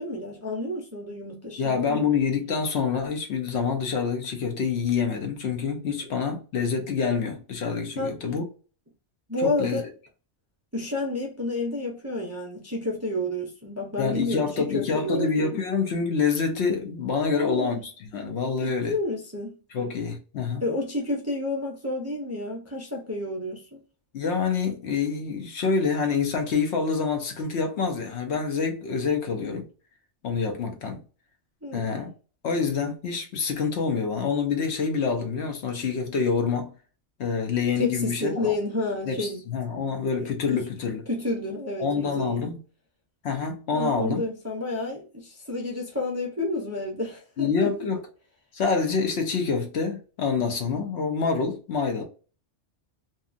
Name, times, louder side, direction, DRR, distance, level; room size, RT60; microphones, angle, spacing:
voice 1, 0.0-2.1 6.0-6.1 8.0-8.1 9.3-9.8 10.7-15.6 17.3-17.8 18.6-19.6 20.6-23.8 31.6-32.0 37.7-39.5 40.2-40.6 41.1-42.5 43.7-47.7, left 2 dB, 20° right, 0.5 m, -30 dB
voice 2, 1.6-8.4 9.4-9.8 14.0-19.0 19.7-20.6 24.1-29.7 30.2-31.0 31.7-32.1 32.4-36.7 37.2-38.5 39.1-41.0 41.8-42.6 43.2-44.2 47.4-48.0 48.5-52.0, left 5 dB, 70° left, 0.9 m, -26 dB
2.7 x 2.3 x 2.4 m
omnidirectional pair, 1.2 m